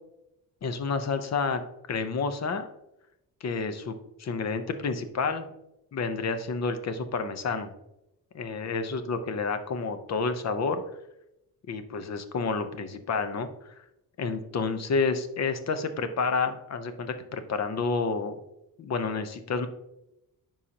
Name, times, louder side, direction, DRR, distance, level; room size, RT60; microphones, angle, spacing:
voice 1, 0.6-1.6 1.9-2.7 3.4-5.5 5.9-7.7 8.3-10.8 11.7-13.7 14.2-18.4 18.8-19.7, left 4 dB, 45° left, 9 dB, 0.8 m, -29 dB
9.8 x 5.6 x 2.9 m, 0.85 s
cardioid pair, 145°, 36 cm